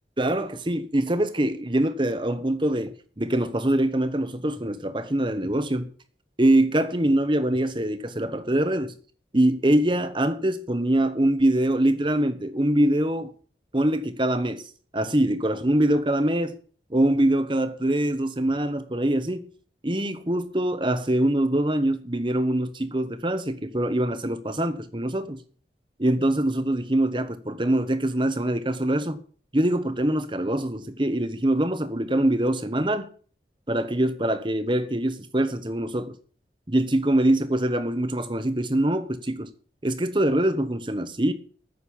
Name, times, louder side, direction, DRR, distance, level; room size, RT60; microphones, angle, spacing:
voice 1, 0.2-5.9 6.4-8.9 9.3-13.3 13.7-14.6 14.9-16.6 16.9-19.5 19.8-25.4 26.0-29.2 29.5-33.1 33.7-36.2 36.7-39.5 39.8-41.3, right 1 dB, 30° right, 1.2 m, -24 dB
9.6 x 7.9 x 8.8 m
head